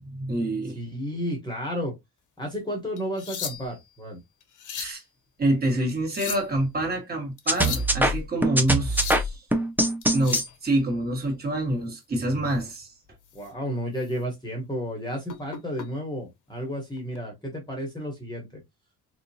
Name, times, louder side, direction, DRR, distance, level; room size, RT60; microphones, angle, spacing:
voice 1, 0.0-0.8 4.7-5.0 5.4-9.4 10.1-12.9, right 1 dB, 25° right, 1.6 m, -27 dB
voice 2, 0.7-2.0 2.4-4.2 13.3-18.6, equal, 10° left, 1.1 m, -32 dB
sound 1, 3.0-3.9 4.4-5.0 5.9-6.6 7.4-7.9 8.7-9.3 10.0-10.6 12.6-12.8 13.3-13.5 14.0-14.1 15.3-15.9 17.0-17.2, left 8 dB, 50° left, 1.0 m, -36 dB
sound 2, 7.5-10.5, right 1 dB, 5° right, 0.5 m, -23 dB
3.8 x 2.8 x 2.7 m
cardioid pair, 130°, 39 cm